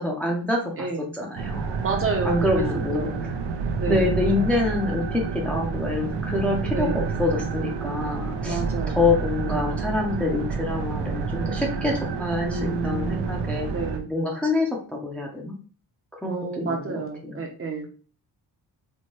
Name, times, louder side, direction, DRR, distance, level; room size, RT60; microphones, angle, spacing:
voice 1, 0.0-0.9 1.1-1.7 2.2-3.1 3.9-13.7 14.0-15.5 16.2-17.4, left 2 dB, 5° left, -1 dB, 0.6 m, -26 dB
voice 2, 0.8-1.1 1.8-2.6 2.9-3.2 3.8-4.1 6.7-7.1 8.4-9.1 9.5-9.8 12.4-13.3 13.7-14.1 16.2-17.9, right 3 dB, 35° right, 2 dB, 0.7 m, -30 dB
sound 1, 1.4-14.0, right 5 dB, 80° right, 0.7 m, -29 dB
4.4 x 2.2 x 3.1 m, 0.39 s
wide cardioid pair, 160°, 40 cm